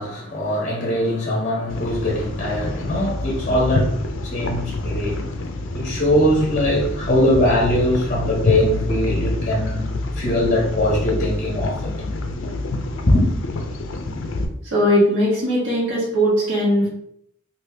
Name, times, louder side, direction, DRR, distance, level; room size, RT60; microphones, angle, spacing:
voice 1, 0.0-4.0 4.2-5.2 5.7-11.9 13.1-13.3, left 1 dB, 35° left, 0.7 m, -21 dB
sound 1, 1.7-14.5, left 2 dB, 80° left, 0.4 m, -27 dB
voice 2, 14.7-16.9, equal, 70° right, 1.2 m, -19 dB
2.7 x 2.5 x 3.3 m
head